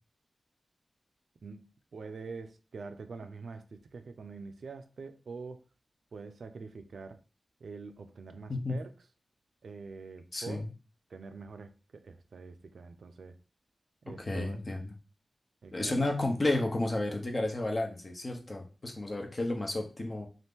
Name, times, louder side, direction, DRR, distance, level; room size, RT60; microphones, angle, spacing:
voice 1, 1.4-5.6 6.1-7.2 7.6-8.9 9.6-10.6 11.1-13.4 14.0-14.6 15.6-16.0, right 4 dB, 90° right, 8 dB, 0.4 m, -45 dB
voice 2, 10.3-10.7 14.2-14.9 15.7-20.3, left 2 dB, 40° left, 2 dB, 0.7 m, -32 dB
2.8 x 2.5 x 3.5 m, 0.35 s
wide cardioid pair, 80°, 0 cm